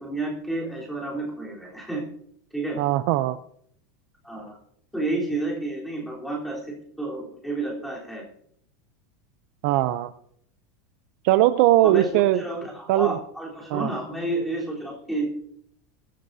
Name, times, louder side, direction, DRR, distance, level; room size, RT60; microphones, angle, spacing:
voice 1, 0.0-2.0 2.5-2.8 4.2-4.6 4.9-8.2 11.8-15.4, right 2 dB, ahead, -3 dB, 3.6 m, -30 dB
voice 2, 2.8-3.4 9.6-10.1 11.2-12.4 12.9-13.1 13.7-13.9, right 14 dB, 45° right, 13 dB, 0.5 m, -20 dB
22.0 x 13.0 x 2.7 m, 0.68 s
supercardioid pair, 175°, 9 cm